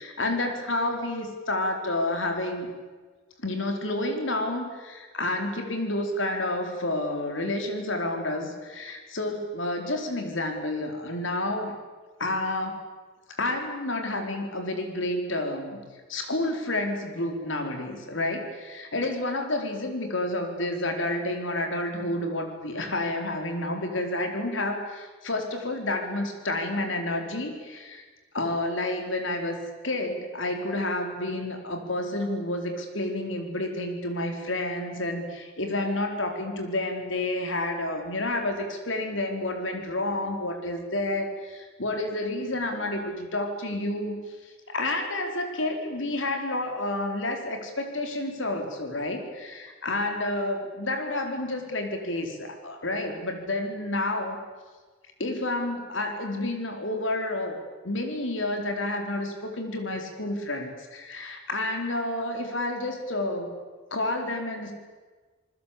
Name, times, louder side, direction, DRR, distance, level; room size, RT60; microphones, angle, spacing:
voice 1, 0.0-2.7 3.4-11.7 12.2-12.8 13.3-15.8 16.1-28.0 28.3-29.6 29.8-44.2 44.4-54.4 55.2-57.6 57.8-63.5 63.9-64.7, left 1 dB, 70° left, 5 dB, 4.2 m, -30 dB
27.5 x 20.0 x 8.5 m, 1.4 s
head